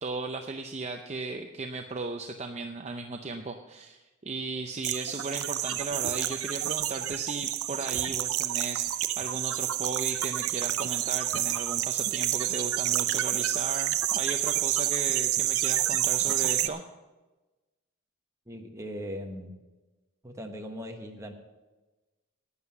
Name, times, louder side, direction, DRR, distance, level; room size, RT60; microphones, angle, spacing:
voice 1, 0.0-16.8, right 3 dB, 30° right, 5 dB, 0.6 m, -36 dB
sound 1, 4.8-16.7, right 12 dB, 90° right, 0.6 m, -29 dB
voice 2, 18.5-19.6 20.2-21.3, equal, 15° right, 2 dB, 1.3 m, -39 dB
11.0 x 9.7 x 6.0 m, 1.1 s
head